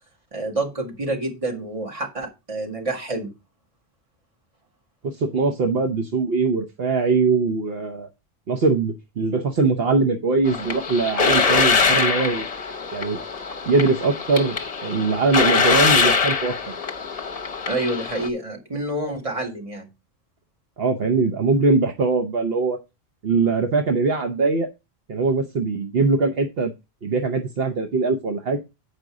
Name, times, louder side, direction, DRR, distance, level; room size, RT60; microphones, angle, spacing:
voice 1, 0.3-3.3 17.7-19.9, right 2 dB, 30° right, 2.1 m, -28 dB
voice 2, 5.0-8.1 8.5-12.5 12.9-13.2 13.7-14.6 14.8-16.5 20.8-22.8 23.2-24.7 25.1-26.7 27.0-28.6, right 4 dB, 65° right, 1.1 m, -21 dB
sound 1, 10.5-18.3, left 5 dB, 40° left, 0.9 m, -23 dB
8.7 x 5.2 x 4.8 m
omnidirectional pair, 1.1 m